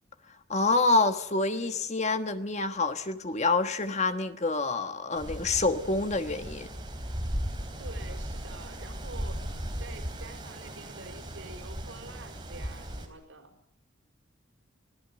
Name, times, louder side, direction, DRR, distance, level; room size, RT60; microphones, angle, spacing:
voice 1, 0.5-6.7, left 3 dB, 35° left, 1.3 m, -27 dB
voice 2, 1.5-1.8 7.4-9.5 9.8-13.5, right 3 dB, 85° right, 5.4 m, -47 dB
Wind, 5.2-13.0, equal, 25° right, 3.5 m, -37 dB
24.5 x 17.0 x 7.5 m
head